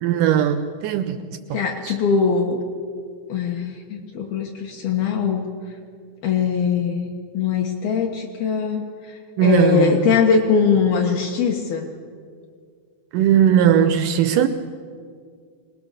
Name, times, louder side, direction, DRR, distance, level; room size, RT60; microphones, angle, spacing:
voice 1, 0.0-1.4 1.9-2.0 9.4-10.1 13.1-14.5, right 9 dB, 85° right, 9 dB, 1.8 m, -18 dB
voice 2, 1.5-2.6 3.3-5.5 6.2-11.9, left 6 dB, 70° left, 0 dB, 3.2 m, -21 dB
24.5 x 20.5 x 6.8 m, 2.1 s
omnidirectional pair, 4.7 m